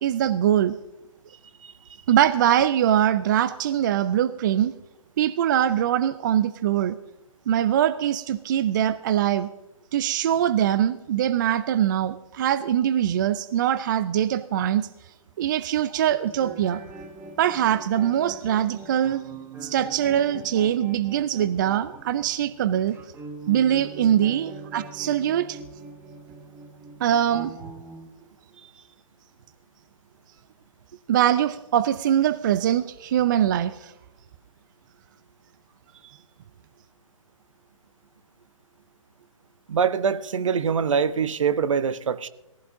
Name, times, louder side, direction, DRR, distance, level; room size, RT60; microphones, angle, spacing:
voice 1, 0.0-0.8 2.1-4.7 5.2-7.0 7.5-9.5 9.9-14.9 15.4-16.8 17.4-19.2 19.6-23.0 23.5-25.6 27.0-27.5 31.1-33.9, right 10 dB, 35° right, 0.4 m, -22 dB
sound 1, 16.2-28.1, right 4 dB, 10° right, 1.0 m, -42 dB
voice 2, 39.7-42.3, right 6 dB, 60° right, 0.7 m, -24 dB
18.0 x 15.0 x 2.7 m
figure-of-eight pair, 135°, 18 cm